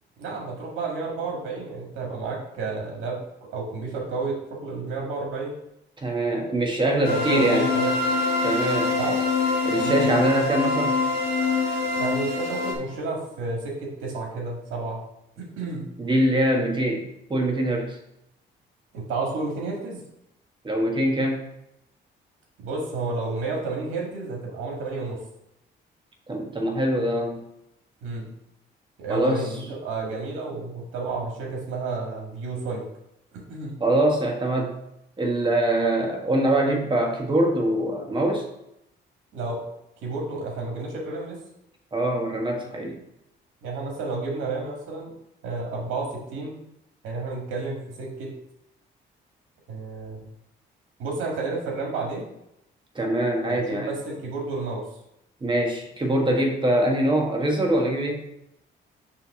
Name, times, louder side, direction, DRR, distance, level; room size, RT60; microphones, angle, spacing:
voice 1, 0.2-5.5 7.0-7.9 8.9-9.2 9.8-10.1 11.9-15.0 15.4-15.9 18.9-20.0 22.6-25.2 28.0-28.3 29.0-32.8 33.3-33.8 39.3-39.6 40.0-41.4 43.6-45.1 45.4-46.6 47.0-48.3 49.7-50.2 51.0-52.3 53.5-54.8, right 3 dB, 90° right, -1 dB, 1.9 m, -31 dB
voice 2, 6.0-7.7 8.4-9.0 9.6-11.0 16.0-18.0 20.6-21.4 26.3-27.4 29.1-29.4 33.8-34.7 35.2-38.4 41.9-43.0 52.9-53.9 55.4-58.2, right 1 dB, 25° right, 1 dB, 1.5 m, -23 dB
sound 1, 7.0-12.7, left 4 dB, 65° left, 2.4 m, -24 dB
5.6 x 3.4 x 5.6 m, 0.83 s
cardioid pair, 90°, 20 cm